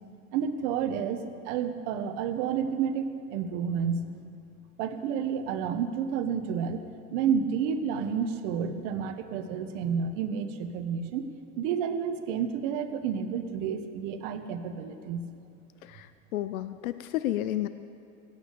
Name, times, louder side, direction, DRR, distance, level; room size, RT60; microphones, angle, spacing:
voice 1, 0.3-4.0 4.8-6.8 7.1-11.3 11.6-15.2, right 7 dB, 60° right, 8 dB, 1.4 m, -30 dB
voice 2, 15.8-17.7, left 13 dB, 85° left, 12 dB, 0.7 m, -31 dB
17.0 x 8.9 x 8.4 m, 2.5 s
supercardioid pair, 115°, 41 cm